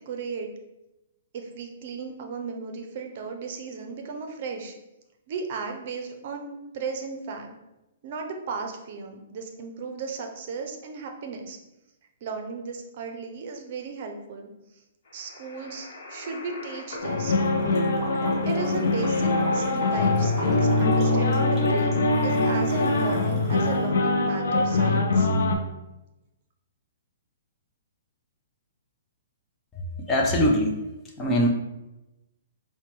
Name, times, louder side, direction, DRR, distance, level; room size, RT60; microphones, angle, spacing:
voice 1, 0.1-0.5 1.3-4.7 5.3-7.5 8.0-11.6 12.2-14.5 15.1-17.3 18.4-25.3, right 5 dB, 50° right, 4 dB, 0.6 m, -35 dB
sound 1, 15.0-23.3, left 3 dB, 60° left, 1.0 m, -39 dB
sound 2, 17.0-25.6, left 2 dB, 85° left, 0.5 m, -23 dB
Gurgling, 17.0-23.9, equal, ahead, 1.1 m, -36 dB
voice 2, 30.1-30.8 31.2-31.5, equal, 15° left, 0 dB, 0.6 m, -21 dB
4.3 x 2.2 x 3.0 m, 0.95 s
hypercardioid pair, 155°, 0 cm